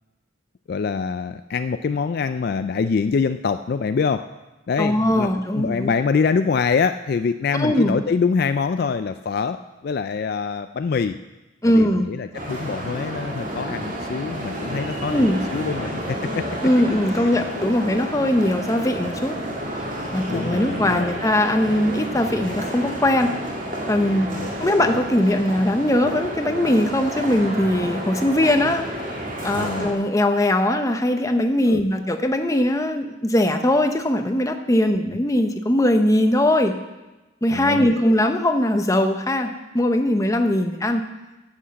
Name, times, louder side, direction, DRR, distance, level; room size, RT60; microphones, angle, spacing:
voice 1, 0.7-4.3 4.7-11.1 11.6-16.5 17.1-17.3 17.6-17.7 20.3-21.2 24.3-24.5 29.5-29.9 31.7-31.8 34.9-35.0 37.5-38.1, left 5 dB, 50° left, 10 dB, 0.3 m, -25 dB
voice 2, 4.8-5.9 7.6-8.0 11.6-12.1 15.1-15.4 16.6-19.4 20.1-23.3 23.9-24.3 24.6-28.9 29.4-36.8 37.4-41.0, left 1 dB, 15° left, 6 dB, 0.7 m, -20 dB
sound 1, 12.3-29.9, right 1 dB, 40° right, 2.3 m, -30 dB
9.9 x 8.0 x 7.5 m, 1.1 s
head